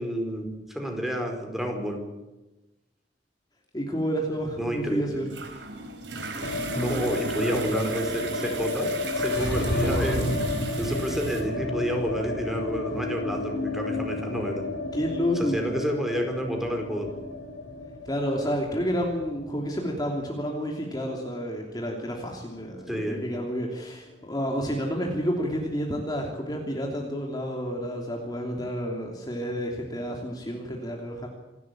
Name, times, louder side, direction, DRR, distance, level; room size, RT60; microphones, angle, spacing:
voice 1, 0.0-2.0 4.6-5.2 6.7-8.9 9.1-14.6 15.4-17.1 22.9-23.2, equal, ahead, 3 dB, 4.7 m, -30 dB
voice 2, 3.7-5.4 14.9-15.6 18.0-31.3, equal, 25° left, 1 dB, 3.0 m, -30 dB
sound 1, 4.4-11.4, right 3 dB, 90° right, 4.5 m, -36 dB
sound 2, 6.4-22.5 22.8-22.9 23.1-23.9, left 2 dB, 85° left, 4.8 m, -32 dB
27.5 x 13.0 x 8.8 m, 1.1 s
head